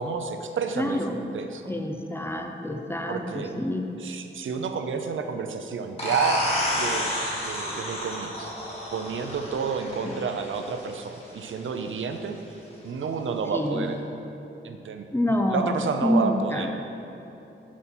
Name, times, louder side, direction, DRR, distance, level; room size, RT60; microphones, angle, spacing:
voice 1, 0.0-1.0 1.3-1.6 3.1-3.5 4.0-6.4 6.7-7.1 7.4-8.5 8.9-12.4 12.8-14.0 14.6-16.8, right 5 dB, 75° right, 6 dB, 0.6 m, -30 dB
voice 2, 0.8-1.2 1.7-3.8 10.0-10.1 13.5-13.9 15.1-16.7, left 1 dB, 10° left, 3 dB, 0.6 m, -27 dB
sound 1, 6.0-11.4, left 1 dB, 30° left, 1.9 m, -30 dB
8.5 x 7.2 x 4.4 m, 2.9 s
wide cardioid pair, 145°, 20 cm